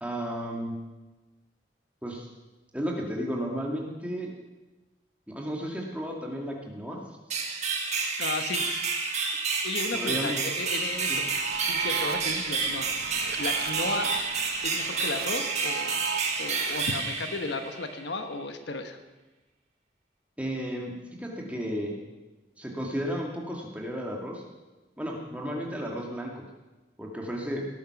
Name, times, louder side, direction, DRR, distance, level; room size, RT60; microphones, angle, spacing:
voice 1, 0.0-0.7 2.0-2.2 2.7-4.3 5.3-7.0 9.9-10.4 11.1-11.2 20.4-20.9 21.2-22.0 22.6-24.4 25.0-26.3 27.0-27.6, equal, 10° right, -1 dB, 2.2 m, -33 dB
sound 1, 7.3-18.0, right 4 dB, 40° right, 1.7 m, -30 dB
voice 2, 8.2-8.6 9.6-11.3 11.6-12.9 13.4-14.1 14.6-16.0 16.4-19.0, left 3 dB, 85° left, 7 dB, 1.2 m, -34 dB
sound 2, 10.6-16.8, right 6 dB, 60° right, 1.0 m, -37 dB
18.0 x 9.3 x 6.0 m, 1.1 s
head